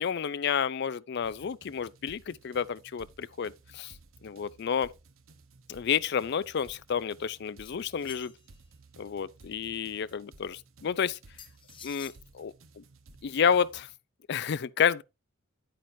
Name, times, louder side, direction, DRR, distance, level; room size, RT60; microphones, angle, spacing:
voice 1, 0.0-3.9 4.2-4.9 5.7-8.3 9.0-11.2 11.8-12.8 13.2-13.9 14.3-15.0, left 7 dB, 55° left, 0.4 m, -30 dB
sound 1, 1.2-14.0, right 3 dB, 85° right, 0.9 m, -57 dB
sound 2, 7.6-8.6 11.4-12.2, left 7 dB, 25° left, 1.1 m, -49 dB
9.2 x 8.7 x 2.6 m
head